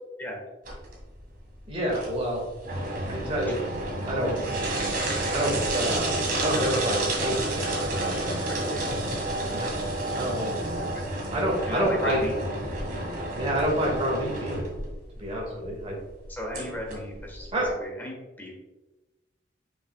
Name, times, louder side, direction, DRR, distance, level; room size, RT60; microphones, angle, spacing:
sound 1, 0.7-17.7, right 1 dB, 50° right, 2.0 m, -30 dB
voice 1, 1.7-2.4 3.1-3.6 4.0-4.4 5.3-7.4 7.8-8.2 9.5-9.8 10.2-10.5 11.3-12.2 13.3-14.6 15.2-16.0 17.5-17.7, right 1 dB, 35° right, -2 dB, 2.0 m, -28 dB
voice 2, 8.5-8.8 10.9-11.0 11.7-12.3 16.3-18.6, left 1 dB, 10° left, -1 dB, 1.5 m, -35 dB
6.8 x 5.8 x 2.4 m, 1.1 s
head